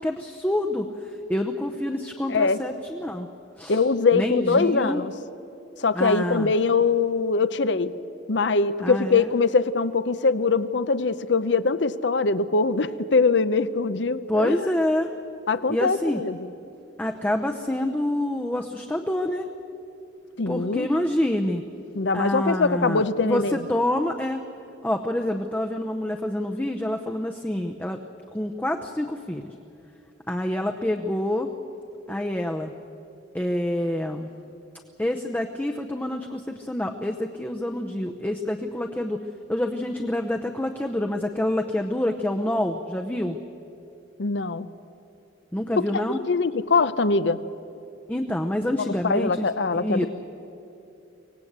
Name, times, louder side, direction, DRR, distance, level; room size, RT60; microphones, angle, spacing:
voice 1, 0.0-3.3 3.6-3.8 4.1-5.0 5.9-6.5 8.8-9.3 14.3-15.1 15.7-16.2 17.0-19.5 20.5-21.6 22.1-24.4 24.8-28.0 28.3-29.5 30.3-31.5 32.1-32.7 33.3-34.3 35.0-39.2 39.5-43.4 45.5-46.2 48.1-50.1, left 1 dB, 10° left, 3 dB, 0.7 m, -27 dB
voice 2, 3.7-5.1 5.8-7.9 8.3-14.7 15.5-16.5 20.4-20.9 22.0-23.7 44.2-44.7 45.8-47.4 48.8-50.1, left 4 dB, 70° left, 14 dB, 0.7 m, -23 dB
24.5 x 18.0 x 8.1 m, 2.8 s
head